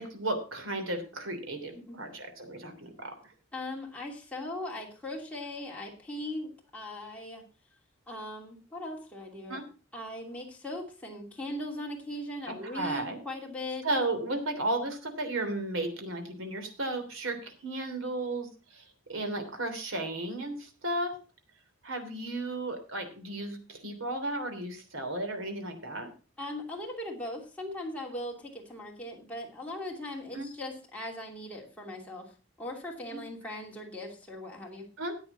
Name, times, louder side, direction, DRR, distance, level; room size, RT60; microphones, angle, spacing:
voice 1, 0.0-3.1 9.5-9.6 12.5-13.2 13.8-18.8 19.1-21.2 21.8-26.1 30.3-30.5 33.1-33.2 35.0-35.2, right 2 dB, 80° right, 6 dB, 3.2 m, -34 dB
voice 2, 3.5-7.4 8.1-9.6 9.9-13.9 26.4-32.3 32.6-34.9, left 1 dB, 5° left, -2 dB, 2.8 m, -39 dB
14.0 x 8.9 x 4.1 m, 0.35 s
head